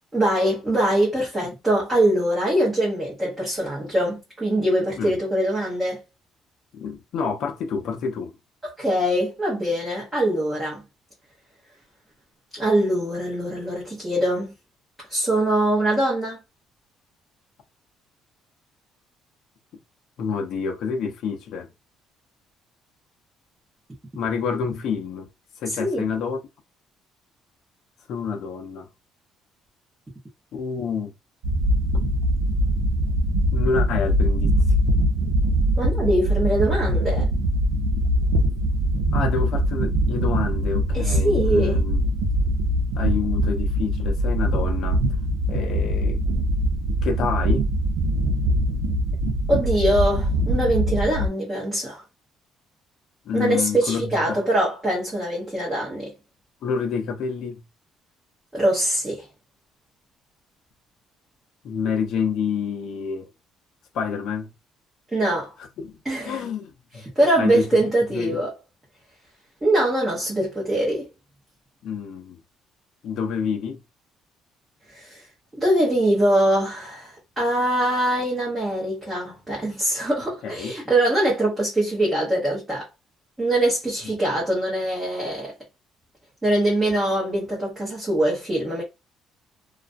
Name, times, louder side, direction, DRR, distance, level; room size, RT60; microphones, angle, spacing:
voice 1, 0.1-6.0 8.8-10.8 12.5-14.5 15.1-16.4 25.8-26.0 35.8-37.3 40.9-41.8 49.5-52.0 53.3-56.1 58.5-59.3 65.1-65.5 66.0-66.5 67.2-68.5 69.6-71.1 74.9-75.3 75.6-82.9 83.4-85.5 86.4-88.8, right 1 dB, 10° right, 0.7 m, -23 dB
voice 2, 6.7-8.4 20.2-21.7 24.1-25.3 25.6-26.4 28.1-28.9 30.5-31.1 33.5-34.5 39.1-42.0 43.0-45.0 45.5-46.2 46.9-47.6 53.2-54.4 56.6-57.6 61.6-63.3 63.9-64.5 65.8-66.0 66.3-67.8 68.1-68.4 71.8-72.4 73.0-73.8 80.4-80.7 84.3-84.4, left 6 dB, 50° left, 0.6 m, -28 dB
sound 1, 31.4-51.3, right 1 dB, 85° right, 0.5 m, -22 dB
2.3 x 2.1 x 2.5 m
cardioid pair, 175°, 0 cm